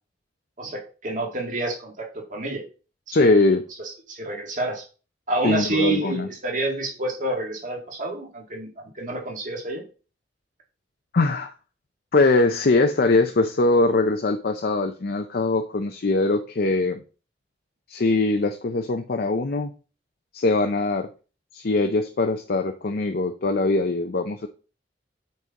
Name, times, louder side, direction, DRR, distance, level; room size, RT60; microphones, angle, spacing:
voice 1, 0.6-2.6 3.1-3.3 3.8-4.8 5.3-8.7 8.9-9.8, right 2 dB, 45° right, 0 dB, 2.1 m, -28 dB
voice 2, 3.1-3.6 5.4-6.3 11.1-11.5 12.1-17.0 17.9-19.7 20.3-21.1 21.5-24.5, left 3 dB, 55° left, 6 dB, 0.6 m, -22 dB
8.5 x 4.4 x 3.7 m, 0.35 s
head